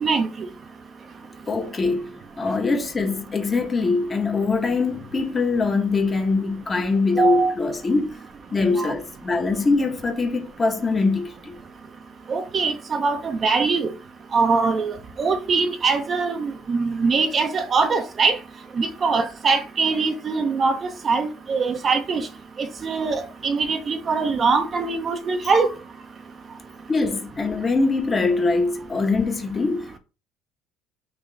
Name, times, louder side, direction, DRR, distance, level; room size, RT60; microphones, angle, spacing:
voice 1, 0.0-0.5 7.2-7.5 8.7-8.9 12.3-13.9 14.3-18.4 18.8-22.3 22.6-25.7, right 4 dB, 40° right, 0.6 m, -22 dB
voice 2, 1.5-8.2 8.5-11.6 26.9-30.0, left 3 dB, 30° left, 0.9 m, -23 dB
3.8 x 2.4 x 3.3 m
supercardioid pair, 80°, 0 cm